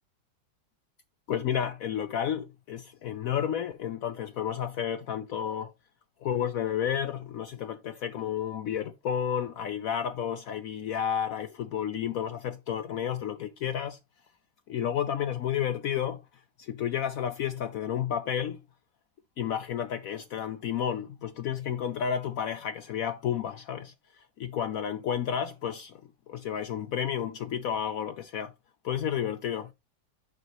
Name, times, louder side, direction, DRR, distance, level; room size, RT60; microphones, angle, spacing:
voice 1, 1.3-5.7 6.2-14.0 14.7-16.2 16.6-18.6 19.4-26.0 26.3-28.5 28.8-29.7, left 9 dB, 70° left, 0.8 m, -31 dB
6.6 x 6.4 x 3.1 m
omnidirectional pair, 1.9 m